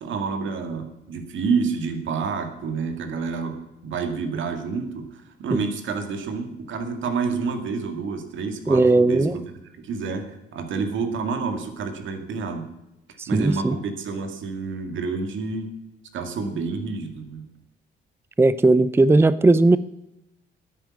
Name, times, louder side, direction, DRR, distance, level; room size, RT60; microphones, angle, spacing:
voice 1, 0.0-9.4 9.8-12.7 13.3-15.7 16.1-17.5, right 4 dB, 75° right, 6 dB, 2.1 m, -28 dB
voice 2, 8.7-9.4 13.2-13.7 18.4-19.8, right 2 dB, 10° right, 15 dB, 0.5 m, -17 dB
10.0 x 9.2 x 8.7 m, 0.90 s
cardioid pair, 90°, 20 cm